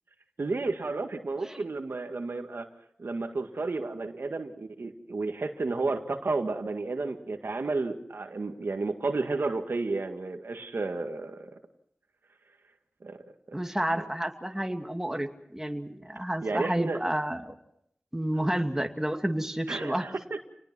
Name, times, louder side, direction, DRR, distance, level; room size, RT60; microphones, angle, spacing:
voice 1, 0.4-2.7 3.0-11.5 13.0-13.2 13.5-13.6 13.9-14.1 16.4-17.0 19.7-20.5, right 3 dB, 80° right, 6 dB, 1.9 m, -32 dB
voice 2, 13.5-17.5 18.1-20.1, right 1 dB, 10° right, 4 dB, 2.4 m, -30 dB
28.0 x 19.5 x 6.1 m, 0.74 s
wide cardioid pair, 45°, 4 cm